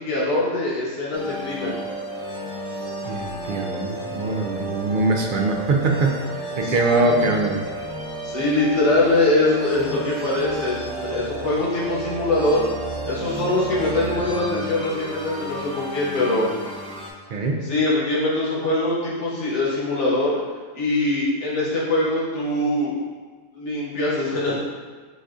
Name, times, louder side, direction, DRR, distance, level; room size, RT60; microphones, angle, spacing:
voice 1, 0.0-1.8 6.6-6.7 8.2-12.7 13.0-16.6 17.3-20.4 20.7-22.9 23.5-24.5, left 2 dB, 65° left, -7 dB, 1.4 m, -23 dB
sound 1, 1.1-17.1, right 1 dB, 5° left, 0.4 m, -32 dB
voice 2, 3.1-6.2 6.6-7.6 17.3-17.6, right 2 dB, 60° right, 1 dB, 0.5 m, -22 dB
7.6 x 2.6 x 2.4 m, 1.5 s
omnidirectional pair, 1.3 m